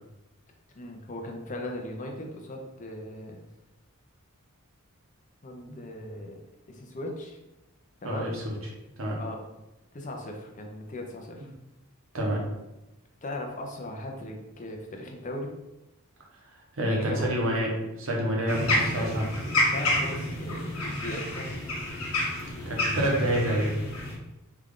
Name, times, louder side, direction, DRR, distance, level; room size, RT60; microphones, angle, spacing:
voice 1, 0.7-3.4 5.4-6.4 6.7-7.4 8.0-8.2 9.1-9.4 9.9-11.5 13.2-15.5 16.8-17.3 19.0-19.1 19.7-21.5, left 1 dB, 35° left, 2 dB, 0.6 m, -38 dB
voice 2, 8.0-8.6 9.0-9.2 12.1-12.4 16.7-17.7 18.0-19.3 22.7-23.8, right 1 dB, 65° right, -2 dB, 0.9 m, -27 dB
sound 1, 18.5-24.2, left 1 dB, 75° left, 1.0 m, -29 dB
3.4 x 2.4 x 3.6 m, 0.96 s
head